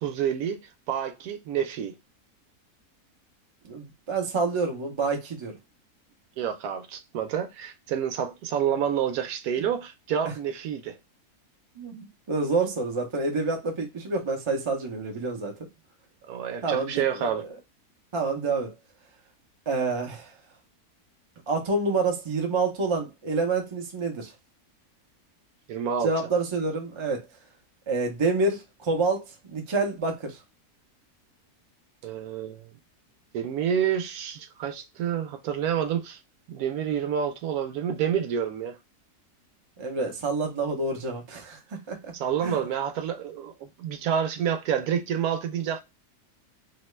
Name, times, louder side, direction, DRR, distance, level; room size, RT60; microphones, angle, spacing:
voice 1, 0.0-2.0 6.4-11.0 16.3-17.5 25.7-26.1 32.0-32.7 33.3-36.2 36.5-38.8 42.1-45.8, right 8 dB, 75° right, 1.1 m, -28 dB
voice 2, 3.6-5.6 9.6-9.7 11.8-15.5 16.6-17.3 18.1-18.7 19.7-20.3 21.5-24.3 26.0-27.3 27.9-30.4 39.8-42.1 42.4-42.6, right 3 dB, 50° right, 0.3 m, -28 dB
2.8 x 2.2 x 3.0 m
omnidirectional pair, 1.7 m